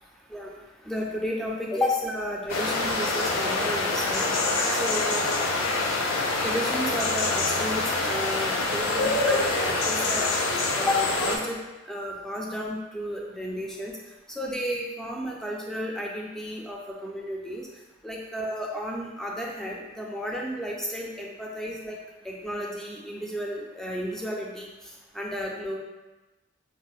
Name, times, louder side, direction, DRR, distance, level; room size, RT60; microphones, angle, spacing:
voice 1, 0.8-4.3 4.7-5.3 6.4-10.3 10.7-11.6 11.9-13.9 14.3-17.7 18.0-22.0 22.2-25.8, left 1 dB, ahead, -2 dB, 0.3 m, -32 dB
sound 1, 2.5-11.4, left 2 dB, 80° left, 0.4 m, -25 dB
4.1 x 2.0 x 2.3 m, 1.1 s
head